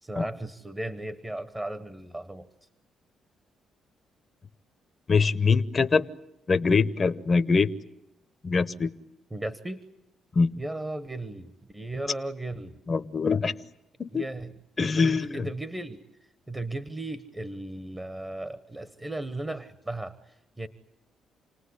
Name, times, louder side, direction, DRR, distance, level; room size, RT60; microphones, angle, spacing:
voice 1, 0.0-2.5 9.3-9.8 10.6-12.8 14.1-16.0 16.5-20.7, right 2 dB, 20° right, 12 dB, 1.2 m, -36 dB
voice 2, 5.1-6.1 6.5-7.7 8.4-8.9 10.3-10.5 12.9-13.5 14.0-14.2 14.8-15.5, left 4 dB, 35° left, 11 dB, 0.9 m, -23 dB
28.0 x 19.0 x 9.9 m, 0.89 s
cardioid pair, 90°, 0 cm